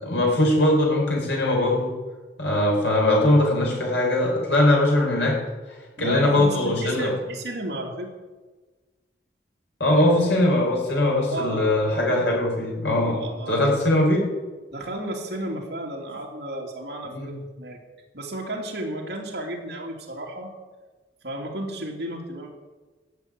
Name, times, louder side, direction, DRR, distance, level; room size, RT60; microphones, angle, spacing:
voice 1, 0.0-1.9 2.4-5.3 6.0-7.1 9.8-13.2 13.5-14.3 17.0-17.3, left 1 dB, 75° left, -2 dB, 5.5 m, -21 dB
voice 2, 6.0-8.1 11.3-12.2 13.0-13.6 14.7-17.8 18.1-20.5 21.2-22.5, right 1 dB, 60° right, 0 dB, 2.7 m, -33 dB
13.5 x 7.3 x 9.5 m, 1.3 s
head